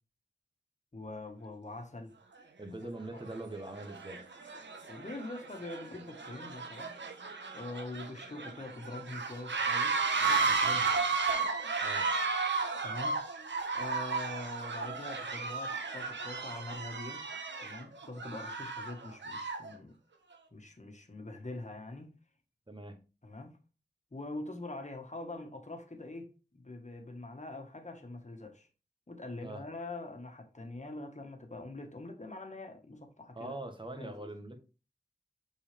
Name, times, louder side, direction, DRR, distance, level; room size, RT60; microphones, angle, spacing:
voice 1, 0.9-2.1 3.1-3.2 4.9-7.0 7.5-11.0 12.8-17.2 17.6-20.0 20.5-22.1 23.2-23.6 24.1-28.7 29.1-33.5 33.9-34.3, left 2 dB, 40° left, 1.7 m, -44 dB
sound 1, 2.4-2.5 3.2-3.4 3.7-19.7, right 4 dB, 90° right, 1.1 m, -34 dB
voice 2, 2.6-4.2 11.8-12.1 22.7-23.0 29.4-29.6 33.3-34.6, right 2 dB, 25° right, 1.6 m, -42 dB
6.4 x 5.4 x 3.5 m
wide cardioid pair, 45°, 18 cm